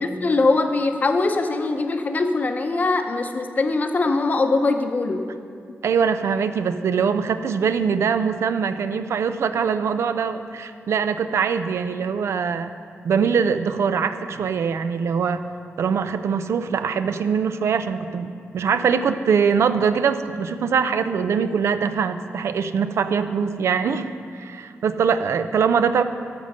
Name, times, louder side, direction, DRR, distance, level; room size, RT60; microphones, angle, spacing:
voice 1, 0.0-5.3, left 3 dB, 35° left, 6 dB, 0.7 m, -22 dB
voice 2, 5.8-12.7 13.0-15.4 15.8-24.1 24.3-26.0, right 6 dB, 75° right, 11 dB, 0.5 m, -22 dB
14.0 x 5.3 x 6.6 m, 2.3 s
wide cardioid pair, 135°, 5 cm